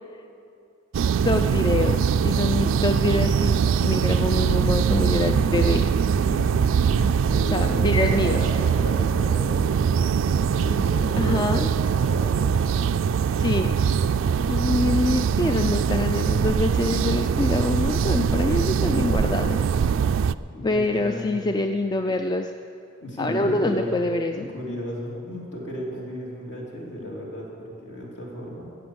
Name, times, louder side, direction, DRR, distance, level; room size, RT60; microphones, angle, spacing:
sound 1, 0.9-20.3, right 6 dB, 70° right, 0.3 m, -22 dB
voice 1, 1.2-5.9 7.5-8.4 11.2-11.7 13.4-13.7 14.5-19.6 20.6-22.5 23.2-24.4, left 2 dB, 20° left, 6 dB, 0.3 m, -25 dB
voice 2, 5.2-5.7 6.1-6.6 6.9-11.5 12.0-12.8 20.5-21.4 23.0-23.9 24.3-28.6, equal, 60° left, -3 dB, 3.1 m, -34 dB
14.5 x 8.0 x 7.8 m, 2.5 s
head